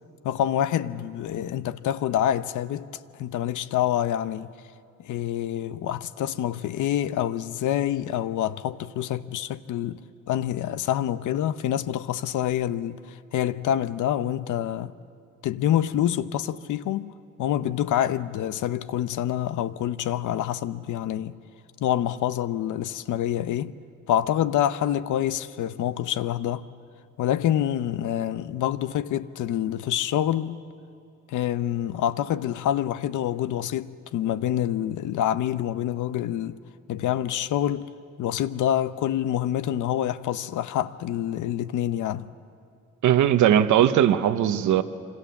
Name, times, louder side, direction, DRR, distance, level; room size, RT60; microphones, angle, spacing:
voice 1, 0.2-2.9 3.2-4.5 5.0-10.0 10.3-14.9 15.4-21.4 21.8-23.7 24.1-26.7 27.2-30.6 31.3-36.6 36.9-37.9 38.2-42.3, left 11 dB, 75° left, 0.8 m, -26 dB
voice 2, 43.0-44.8, right 10 dB, 75° right, 1.1 m, -19 dB
26.5 x 25.5 x 7.2 m
cardioid pair, 170°, 31 cm